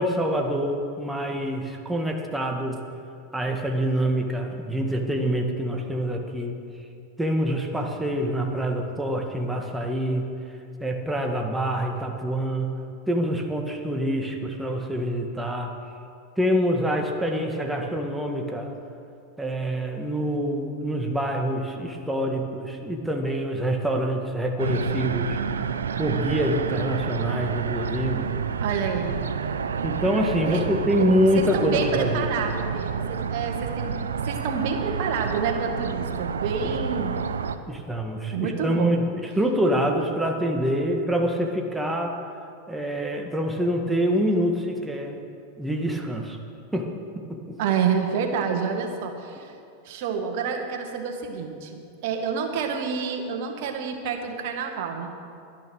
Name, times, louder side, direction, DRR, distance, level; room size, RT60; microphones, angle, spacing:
voice 1, 0.0-2.8 3.3-6.6 7.2-10.3 10.8-12.8 13.1-15.7 16.4-18.7 19.4-25.4 26.0-28.3 29.8-32.5 36.6-36.7 37.7-42.2 42.7-45.2 45.6-46.4 46.7-46.9 47.3-47.6, equal, 5° right, 2 dB, 1.8 m, -26 dB
sound 1, 24.6-37.6, right 6 dB, 90° right, 0.6 m, -29 dB
voice 2, 28.6-29.1 30.5-30.6 31.0-37.2 38.3-39.0 47.6-49.5 49.9-55.1, right 6 dB, 60° right, 2 dB, 1.8 m, -28 dB
11.5 x 10.5 x 6.3 m, 2.5 s
hypercardioid pair, 100°, 0 cm